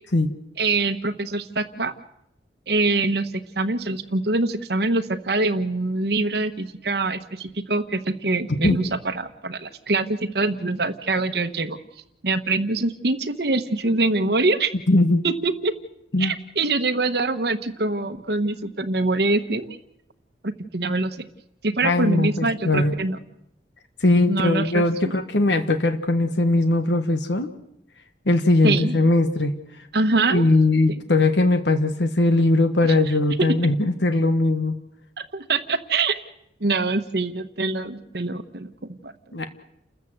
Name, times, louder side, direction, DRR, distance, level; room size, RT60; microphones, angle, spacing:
voice 1, 0.6-1.9 2.7-11.8 12.2-14.7 15.2-15.7 16.2-19.8 20.4-21.1 21.6-23.2 24.3-25.2 28.6-29.0 29.9-30.4 33.4-33.5 35.2-36.2 36.6-39.1, right 3 dB, 60° right, 7 dB, 1.1 m, -24 dB
voice 2, 14.9-15.2 16.1-16.3 21.8-22.9 24.0-27.5 28.2-29.5 30.3-34.8 39.3-39.5, left 2 dB, 75° left, 9 dB, 1.4 m, -20 dB
29.5 x 14.0 x 7.9 m, 0.80 s
head